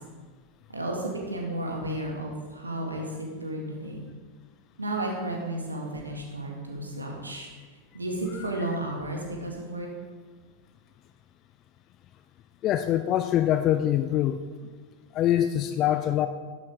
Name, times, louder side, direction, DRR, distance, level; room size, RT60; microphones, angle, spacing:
voice 1, 0.7-4.1 4.8-7.5 7.9-9.9, right 1 dB, 80° right, 0 dB, 2.1 m, -33 dB
voice 2, 12.6-14.4 15.1-16.3, left 11 dB, 35° left, 9 dB, 0.5 m, -24 dB
12.5 x 11.5 x 3.6 m, 1.5 s
figure-of-eight pair, 90°, 0 cm